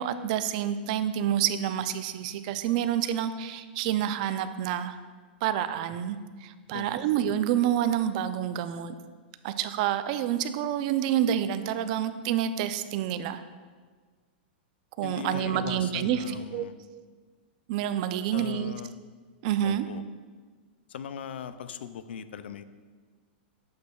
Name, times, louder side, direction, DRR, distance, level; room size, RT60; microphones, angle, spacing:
voice 1, 0.0-5.0 5.4-9.0 9.4-13.4 15.0-16.2 16.5-16.6 17.7-18.7 19.4-19.9, right 10 dB, 45° right, 11 dB, 0.4 m, -28 dB
voice 2, 6.7-7.1 15.0-16.8 18.3-18.9 19.6-20.0 20.9-22.6, left 8 dB, 85° left, 13 dB, 0.4 m, -39 dB
8.4 x 6.1 x 2.3 m, 1.5 s
supercardioid pair, 150°, 6 cm